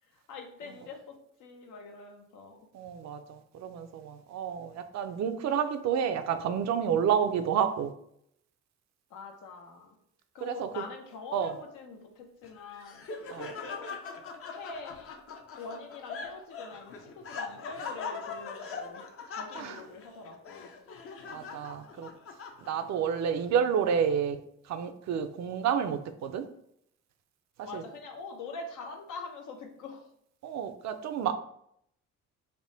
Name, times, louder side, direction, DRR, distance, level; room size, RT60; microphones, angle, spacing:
voice 1, 0.1-2.7 9.1-10.0 10.3-13.1 13.7-13.9 14.5-20.7 27.6-30.0, left 4 dB, 85° left, 3 dB, 0.8 m, -44 dB
voice 2, 2.7-7.9 10.4-10.8 11.3-11.5 13.3-13.5 19.6-19.8 21.3-22.1 22.7-24.4 24.7-26.5 27.6-27.8 30.4-31.3, right 8 dB, 60° right, 9 dB, 0.5 m, -30 dB
Laughter, 12.4-23.0, left 4 dB, 50° left, 0.5 m, -41 dB
3.4 x 2.1 x 3.8 m, 0.71 s
cardioid pair, 90°, 30 cm